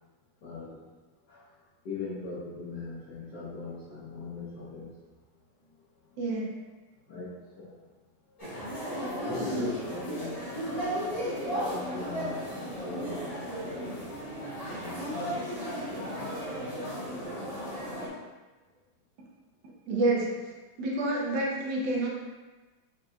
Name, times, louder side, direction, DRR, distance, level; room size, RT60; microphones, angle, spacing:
voice 1, 0.4-0.8 1.3-1.5 1.8-5.0 6.1-6.5 7.1-7.8 8.5-8.7 9.2-10.9 11.5-13.2 13.6-14.4 14.7-15.6 15.9-17.5, left 3 dB, 65° left, -10 dB, 1.4 m, -40 dB
voice 2, 6.2-6.5 9.4-9.6 19.9-20.3 20.8-22.1, right 2 dB, 80° right, -3 dB, 1.6 m, -28 dB
sound 1, 8.4-18.1, equal, 25° left, 1.1 m, -35 dB
4.7 x 4.2 x 2.3 m, 1.2 s
omnidirectional pair, 2.0 m